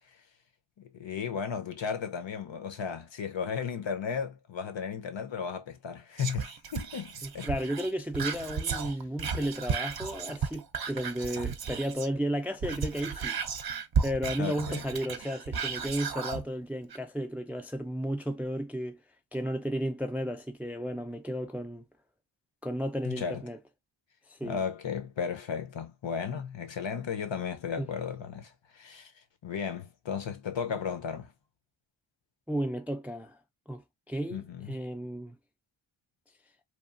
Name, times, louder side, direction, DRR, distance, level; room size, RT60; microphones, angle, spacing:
voice 1, 0.8-7.5 8.8-8.9 14.4-14.9 23.0-23.4 24.4-29.1 29.4-31.3 34.3-34.7, left 6 dB, 70° left, 0.8 m, -35 dB
Whispering, 6.2-12.2 12.5-16.4 16.9-17.0, right 6 dB, 50° right, 0.5 m, -34 dB
voice 2, 7.2-13.4 14.0-19.0 19.3-21.8 22.6-23.6 24.3-24.6 27.8-27.9 32.5-33.4 33.7-33.8 34.1-35.4, equal, 5° right, 0.3 m, -33 dB
3.0 x 2.3 x 2.4 m
wide cardioid pair, 110°, 48 cm